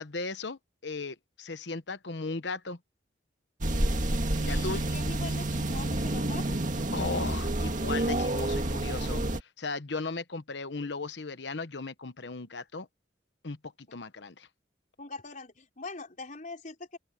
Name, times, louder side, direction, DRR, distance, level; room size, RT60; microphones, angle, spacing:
voice 1, 0.0-2.8 4.4-4.8 6.9-12.9 13.4-13.6 13.9-14.5, left 3 dB, 70° left, 1.1 m, -36 dB
sound 1, 3.6-9.4, right 1 dB, 45° right, 2.0 m, -29 dB
voice 2, 4.4-6.7 15.0-17.0, left 3 dB, 45° left, 4.6 m, -42 dB
open air
head